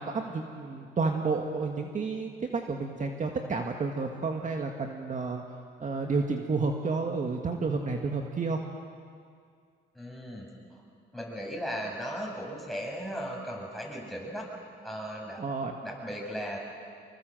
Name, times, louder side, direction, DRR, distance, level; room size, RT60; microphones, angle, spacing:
voice 1, 0.0-5.4 5.8-8.6 15.4-15.7, right 4 dB, 40° right, 3 dB, 1.9 m, -31 dB
voice 2, 9.9-10.5 11.1-14.5 14.8-15.4 15.8-16.6, equal, ahead, -2 dB, 7.7 m, -36 dB
25.5 x 23.0 x 7.8 m, 2.2 s
cardioid pair, 90°, 20 cm